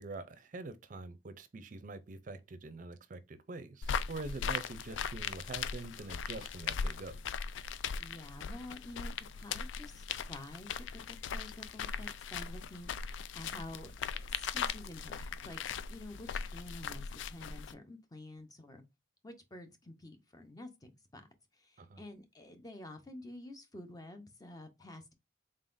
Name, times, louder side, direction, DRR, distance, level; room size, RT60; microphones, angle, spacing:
voice 1, 0.0-7.2 21.8-22.0, right 3 dB, 45° right, 0.5 m, -45 dB
sound 1, 3.8-17.7, left 6 dB, 85° left, 0.3 m, -39 dB
voice 2, 8.0-12.9 13.3-15.6 15.9-18.8 19.2-21.3 21.6-25.1, left 1 dB, 20° left, 0.6 m, -49 dB
3.9 x 3.7 x 2.5 m
head